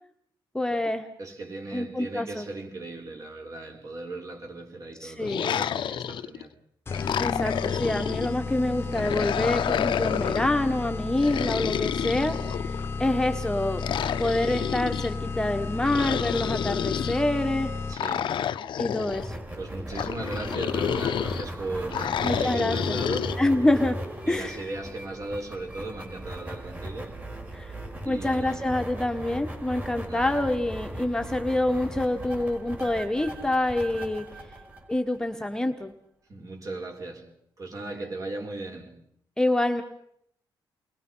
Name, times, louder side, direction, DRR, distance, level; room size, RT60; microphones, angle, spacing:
voice 1, 0.5-1.0 1.7-2.4 5.0-5.4 7.2-13.8 14.2-17.7 18.8-19.4 22.2-22.7 23.4-24.0 24.3-24.5 27.5-27.7 28.1-34.3 34.9-35.9 39.4-39.8, left 1 dB, 5° left, 1.4 m, -26 dB
voice 2, 1.2-6.5 17.9-18.4 19.5-23.5 24.2-27.2 28.0-28.7 30.0-30.4 36.3-37.3 37.6-39.0, right 2 dB, 40° right, 5.2 m, -37 dB
sound 1, 5.2-6.4 6.9-8.3 8.9-10.5 11.2-12.9 13.8-15.1 15.8-17.2 17.9-19.3 19.9-21.5 21.9-23.4, left 9 dB, 70° left, 0.8 m, -29 dB
sound 2, 6.9-18.2, left 4 dB, 25° left, 1.2 m, -33 dB
sound 3, 19.0-35.5, right 1 dB, 20° right, 4.7 m, -38 dB
29.5 x 21.5 x 5.7 m
wide cardioid pair, 135°, 9 cm